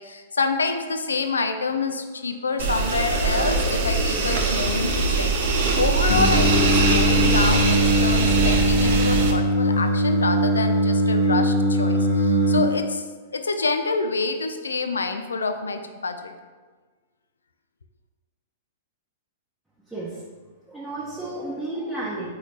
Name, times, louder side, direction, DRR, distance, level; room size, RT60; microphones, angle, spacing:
voice 1, 0.0-5.3 5.8-13.0 13.3-16.3, left 4 dB, 80° left, 7 dB, 0.3 m, -27 dB
sound 1, 2.6-9.3, right 3 dB, 55° right, 0.5 m, -22 dB
Singing, 6.1-12.6, equal, 55° left, 0.7 m, -21 dB
voice 2, 19.9-20.2 20.7-22.4, right 2 dB, 5° right, -9 dB, 0.8 m, -32 dB
4.2 x 2.7 x 3.3 m, 1.4 s
figure-of-eight pair, 105°, 0 cm